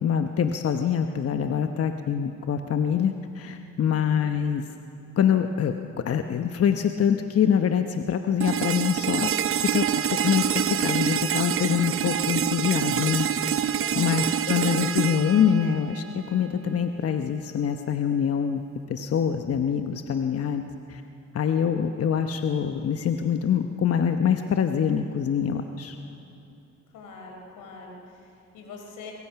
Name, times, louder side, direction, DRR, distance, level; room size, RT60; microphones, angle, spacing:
voice 1, 0.0-4.6 5.2-5.7 6.0-9.3 9.6-13.3 14.0-18.6 18.9-20.6 20.9-21.0 21.3-26.0, left 8 dB, 50° left, 6 dB, 1.0 m, -25 dB
voice 2, 3.8-4.3 13.8-14.3 26.9-29.1, left 3 dB, 85° left, 2 dB, 4.2 m, -44 dB
sound 1, 8.4-16.4, right 9 dB, 45° right, 0.7 m, -26 dB
23.0 x 22.0 x 5.9 m, 2.7 s
cardioid pair, 90°, 30 cm